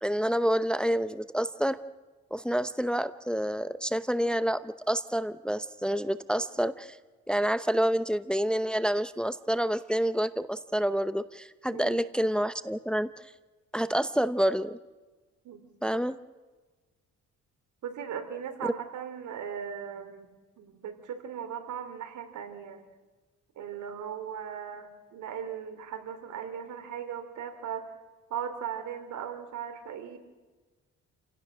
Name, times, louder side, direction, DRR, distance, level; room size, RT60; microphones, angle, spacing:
voice 1, 0.0-1.8 2.3-7.0 7.3-13.3 13.7-14.8 15.8-16.2, equal, 5° left, 13 dB, 0.7 m, -28 dB
voice 2, 11.7-12.0 15.4-15.6 15.9-16.0 17.8-22.8 23.5-27.9 28.3-30.2, right 8 dB, 75° right, 8 dB, 3.3 m, -38 dB
29.5 x 17.0 x 6.3 m, 1.3 s
cardioid pair, 90°, 30 cm